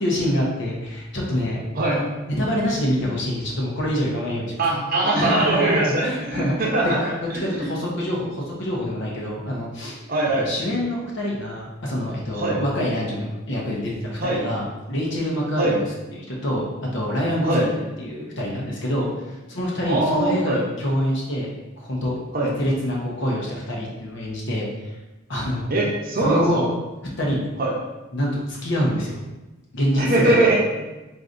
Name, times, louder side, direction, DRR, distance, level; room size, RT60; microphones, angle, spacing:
voice 1, 0.0-1.6 1.9-2.0 2.4-4.5 5.1-6.7 7.4-10.0 10.4-15.8 16.2-17.7 18.0-22.1 22.4-24.9 25.3-25.7 26.2-26.7 27.2-27.4 28.1-29.2 29.7-30.4, equal, 60° left, -3 dB, 0.8 m, -26 dB
voice 2, 4.6-7.7 10.1-10.5 12.3-12.6 14.2-14.4 15.6-15.8 17.5-17.7 19.8-20.6 22.3-22.5 25.7-26.6 27.6-27.7 29.9-30.6, right 2 dB, 45° right, -3 dB, 0.7 m, -22 dB
4.8 x 2.6 x 2.5 m, 1.1 s
head